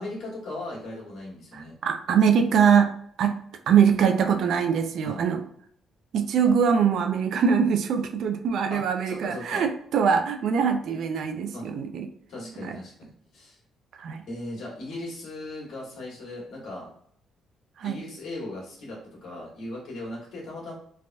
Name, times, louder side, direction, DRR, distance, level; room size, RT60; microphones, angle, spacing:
voice 1, 0.0-1.7 5.0-5.2 8.7-9.6 11.5-11.7 12.3-13.6 14.2-16.9 17.8-20.7, left 1 dB, 70° left, -3 dB, 1.4 m, -38 dB
voice 2, 1.5-2.9 3.2-3.3 3.7-5.4 6.1-12.1 12.6-12.8 14.0-14.2 17.8-18.0, right 7 dB, 70° right, 7 dB, 0.4 m, -23 dB
3.3 x 2.5 x 2.2 m, 0.63 s
cardioid pair, 90°, 0 cm